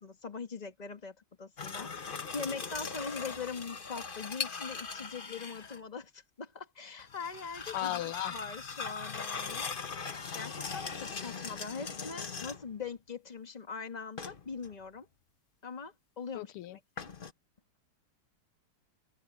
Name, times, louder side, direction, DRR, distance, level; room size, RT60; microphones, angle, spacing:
voice 1, 0.0-9.7 10.3-15.1 15.6-17.1, left 5 dB, 20° left, 1.7 m, -42 dB
sound 1, 1.6-5.8 7.0-12.8 14.2-14.7 17.0-17.3, left 5 dB, 35° left, 0.8 m, -40 dB
voice 2, 7.7-8.3 16.3-16.8, left 14 dB, 85° left, 1.6 m, -35 dB
open air
omnidirectional pair, 2.4 m